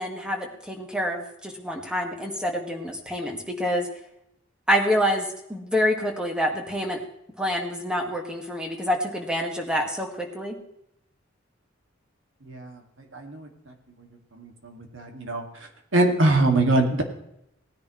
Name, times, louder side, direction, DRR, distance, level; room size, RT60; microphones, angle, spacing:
voice 1, 0.0-3.9 4.7-7.0 7.4-10.6, equal, 5° right, 2 dB, 1.9 m, -27 dB
voice 2, 12.5-12.8 13.1-13.5 14.4-15.4 15.9-17.0, right 2 dB, 70° right, 3 dB, 2.2 m, -23 dB
18.5 x 10.0 x 3.2 m, 0.78 s
head